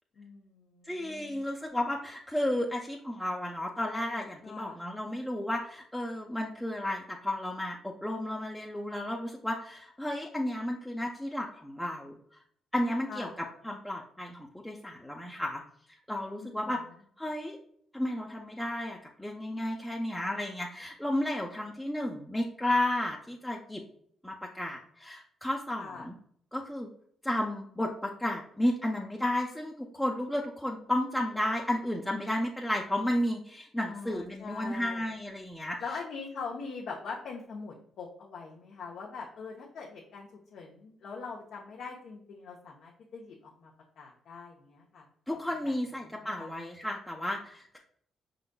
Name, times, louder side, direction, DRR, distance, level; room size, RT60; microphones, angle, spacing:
voice 1, 0.2-1.5 4.4-4.8 13.1-13.3 16.4-16.7 25.8-26.1 33.8-35.0 35.8-43.7 44.0-45.1 45.6-45.7 46.0-46.5, left 4 dB, 70° left, -2 dB, 0.7 m, -43 dB
voice 2, 0.9-12.2 12.7-13.3 13.6-15.6 16.1-16.8 17.2-17.6 17.9-23.8 24.2-26.1 26.5-26.9 27.2-35.8 45.3-47.8, left 1 dB, 5° left, -1 dB, 0.6 m, -33 dB
5.1 x 3.9 x 2.2 m, 0.64 s
supercardioid pair, 65°, 0 cm